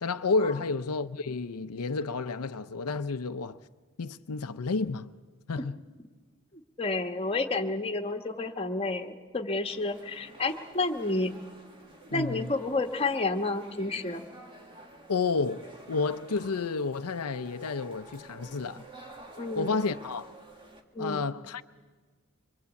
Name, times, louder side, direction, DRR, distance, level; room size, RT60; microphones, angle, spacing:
voice 1, 0.0-3.6 4.0-5.1 5.5-5.8 12.1-12.5 15.1-18.8 19.6-20.3 21.0-21.6, left 4 dB, 90° left, 0.7 m, -31 dB
voice 2, 6.8-11.3 12.1-14.2 19.4-19.8 20.9-21.2, left 3 dB, 25° left, 1.4 m, -30 dB
sound 1, 9.6-20.8, right 1 dB, 25° right, 2.0 m, -50 dB
24.5 x 23.5 x 8.3 m
head